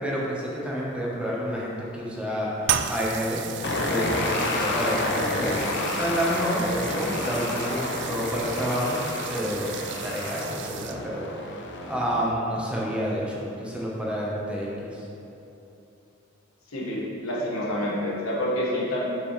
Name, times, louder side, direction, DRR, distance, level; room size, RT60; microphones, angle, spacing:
voice 1, 0.0-3.4 3.9-5.6 5.9-15.0, equal, 5° right, -5 dB, 0.9 m, -29 dB
sound 1, 2.6-11.2, right 9 dB, 60° right, 0.3 m, -35 dB
sound 2, 3.6-12.3, left 2 dB, 55° left, 0.7 m, -30 dB
voice 2, 16.7-19.0, left 1 dB, 85° left, -4 dB, 1.4 m, -28 dB
6.4 x 6.0 x 3.1 m, 2.8 s
head